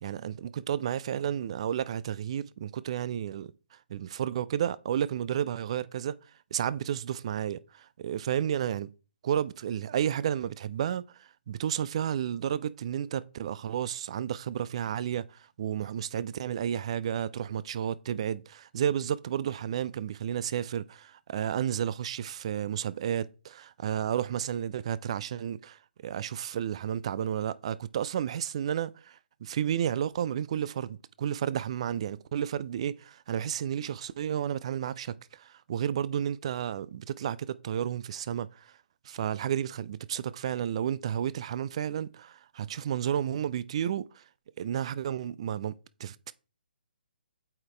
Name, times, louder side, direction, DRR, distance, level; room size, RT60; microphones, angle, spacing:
voice 1, 0.0-3.5 3.9-6.2 6.5-8.9 9.2-38.7 39.0-44.2 44.6-46.3, right 9 dB, 35° right, 0.3 m, -32 dB
8.3 x 4.0 x 3.3 m
figure-of-eight pair, 135°, 6 cm